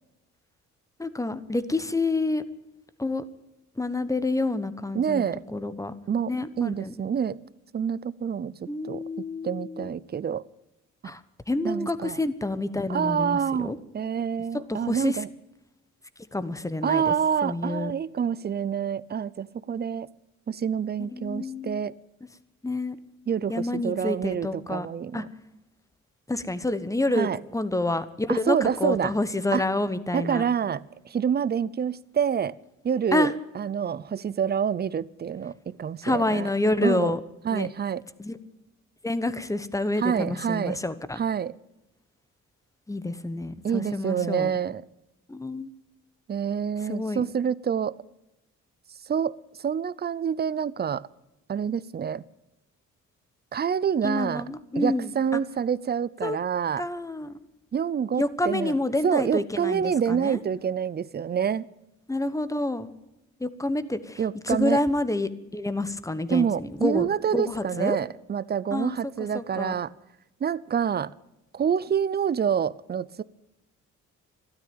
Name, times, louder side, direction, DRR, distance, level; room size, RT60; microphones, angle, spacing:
voice 1, 1.0-2.4 3.0-3.2 3.8-5.9 6.3-6.9 8.7-9.9 11.0-11.2 11.5-13.8 14.7-15.2 16.3-17.1 17.4-17.9 21.1-21.8 22.6-23.0 23.5-24.9 25.1-25.2 26.3-30.4 33.1-33.3 36.0-37.2 37.5-37.7 38.2-38.4 39.0-41.2 42.9-44.5 45.3-45.7 46.9-47.2 54.0-55.1 56.2-56.4 56.8-57.4 58.1-60.4 62.1-62.9 63.4-68.0 68.7-69.0 69.3-69.8, left 2 dB, 10° left, 13 dB, 1.1 m, -28 dB
voice 2, 4.9-5.4 6.1-7.4 7.7-8.5 8.8-10.4 11.0-11.1 11.6-12.2 12.9-15.3 16.8-20.1 20.5-21.9 23.3-25.3 27.1-27.4 28.3-29.2 29.5-29.6 30.1-32.6 32.8-36.5 36.8-37.2 37.4-38.0 40.0-40.8 41.1-41.6 43.6-44.8 46.3-48.0 49.1-51.1 51.5-52.2 53.5-54.4 54.8-56.8 57.7-58.7 59.0-61.7 64.2-64.8 66.3-69.9 70.4-71.1 71.5-73.2, right 7 dB, 35° right, 21 dB, 0.6 m, -27 dB
13.0 x 12.5 x 8.8 m, 0.92 s
cardioid pair, 90°, 30 cm